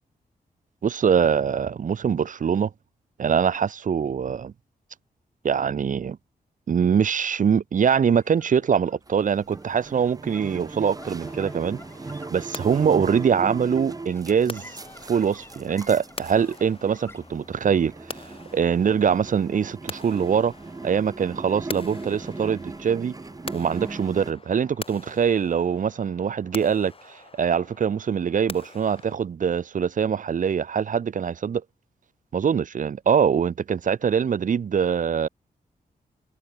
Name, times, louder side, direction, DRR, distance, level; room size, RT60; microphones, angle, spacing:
voice 1, 0.8-2.7 3.2-4.5 5.4-6.2 6.7-11.8 12.3-14.8 15.0-20.5 20.8-23.1 23.5-31.6 32.3-35.3, right 7 dB, 55° right, 0.9 m, -23 dB
sound 1, 8.1-24.7, left 2 dB, 15° left, 6.4 m, -53 dB
sound 2, 9.1-24.3, right 3 dB, 25° right, 1.5 m, -38 dB
sound 3, 11.2-29.2, left 4 dB, 35° left, 4.6 m, -44 dB
wide cardioid pair, 140°, 16 cm